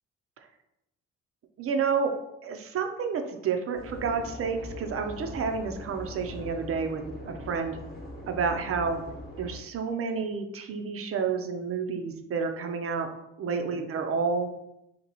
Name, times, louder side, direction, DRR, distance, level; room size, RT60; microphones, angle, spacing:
voice 1, 1.6-2.1 2.4-7.8 8.3-9.0 9.4-13.1 13.4-14.5, right 5 dB, 50° right, 6 dB, 0.6 m, -30 dB
sound 1, 3.7-9.6, left 1 dB, 30° left, 1.1 m, -41 dB
3.0 x 2.8 x 4.0 m, 0.86 s
cardioid pair, 90°, 30 cm